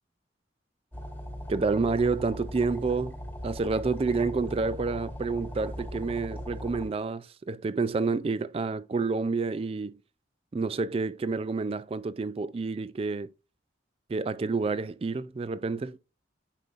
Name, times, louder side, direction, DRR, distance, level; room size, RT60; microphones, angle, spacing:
sound 1, 0.9-6.9, equal, 10° left, 1.3 m, -39 dB
voice 1, 1.5-3.2 3.4-10.0 10.5-13.3 14.1-16.0, right 4 dB, 30° right, 0.3 m, -29 dB
9.7 x 5.4 x 2.5 m
head